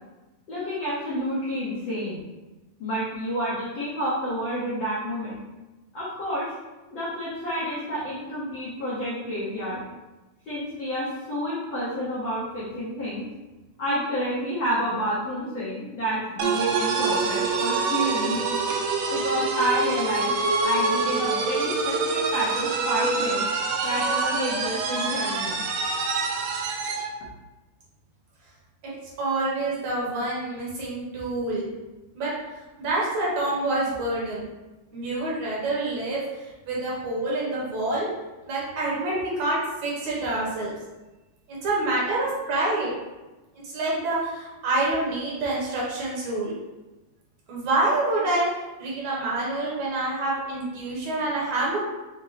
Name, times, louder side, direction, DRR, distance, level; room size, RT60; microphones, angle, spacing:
voice 1, 0.5-2.2 2.8-5.4 5.9-6.5 6.9-9.8 10.5-13.3 13.8-18.4 19.1-20.3 20.6-23.5 23.8-25.6, equal, 80° left, -8 dB, 1.0 m, -29 dB
sound 1, 16.4-27.1, right 4 dB, 90° right, 1.5 m, -26 dB
voice 2, 29.2-31.7 32.1-32.3 32.8-34.5 34.9-36.2 36.7-38.1 38.5-40.8 41.5-42.9 43.6-46.6 47.5-51.8, right 2 dB, 65° right, -5 dB, 2.2 m, -27 dB
6.1 x 2.1 x 4.0 m, 1.1 s
omnidirectional pair, 3.7 m